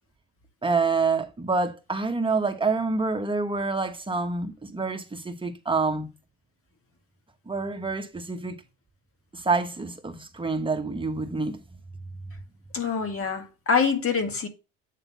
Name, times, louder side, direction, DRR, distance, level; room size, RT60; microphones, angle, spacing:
voice 1, 0.6-6.1 7.5-8.6 9.3-11.6, right 4 dB, 15° right, 1.2 m, -27 dB
voice 2, 12.7-14.5, left 5 dB, 40° left, 1.9 m, -25 dB
8.4 x 3.6 x 5.7 m
supercardioid pair, 70°, 35 cm